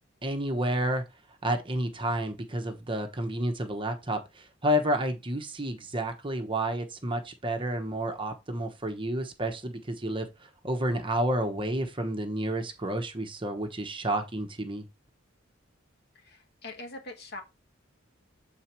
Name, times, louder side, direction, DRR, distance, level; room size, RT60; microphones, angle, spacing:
voice 1, 0.2-1.0 1.4-10.3 10.6-14.8, right 1 dB, 25° right, 1.0 m, -30 dB
voice 2, 16.1-17.4, left 2 dB, 55° left, 1.5 m, -42 dB
7.5 x 4.1 x 4.4 m
head